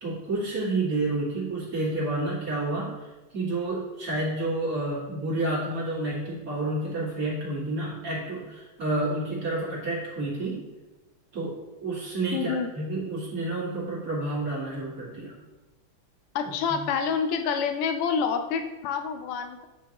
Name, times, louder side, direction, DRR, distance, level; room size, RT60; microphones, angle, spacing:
voice 1, 0.0-2.9 3.3-10.6 11.3-15.4 16.7-16.8, right 2 dB, 40° right, -6 dB, 2.4 m, -30 dB
voice 2, 12.3-12.7 16.3-19.7, left 6 dB, 90° left, 7 dB, 1.6 m, -27 dB
8.9 x 5.1 x 2.9 m, 1.1 s
omnidirectional pair, 2.4 m